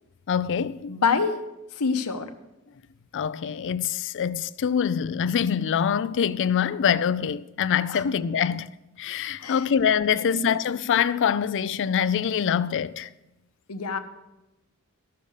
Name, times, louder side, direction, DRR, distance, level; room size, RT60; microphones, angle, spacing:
voice 1, 0.3-1.0 3.1-8.7 9.0-13.1, left 8 dB, 55° left, 0.4 m, -25 dB
voice 2, 0.9-1.3 1.8-2.3 7.9-8.1 9.4-9.6 10.1-10.5 13.7-14.0, left 5 dB, 75° left, 0.9 m, -26 dB
13.0 x 6.8 x 6.5 m
head